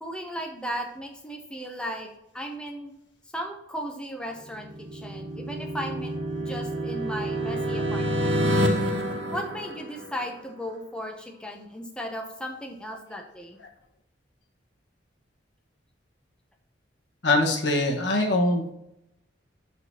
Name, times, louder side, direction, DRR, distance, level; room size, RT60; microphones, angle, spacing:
voice 1, 0.0-2.1 2.3-2.9 3.3-6.1 6.4-8.4 9.3-13.6, equal, 5° left, 2 dB, 0.7 m, -36 dB
sound 1, 4.5-10.4, equal, 85° right, 1.3 m, -28 dB
voice 2, 17.2-18.7, left 2 dB, 70° left, 1 dB, 1.4 m, -23 dB
12.0 x 4.0 x 2.9 m, 0.83 s
head